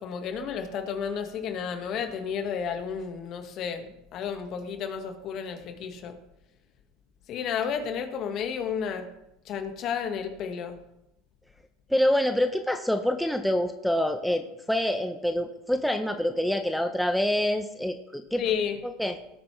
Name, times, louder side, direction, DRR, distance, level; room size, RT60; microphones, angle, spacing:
voice 1, 0.0-6.2 7.3-9.1 9.5-10.8 18.4-18.8, left 7 dB, 50° left, 6 dB, 1.7 m, -32 dB
voice 2, 11.9-18.4 18.8-19.2, left 1 dB, ahead, 6 dB, 0.9 m, -26 dB
17.5 x 8.6 x 3.4 m, 0.86 s
hypercardioid pair, 90°, 0 cm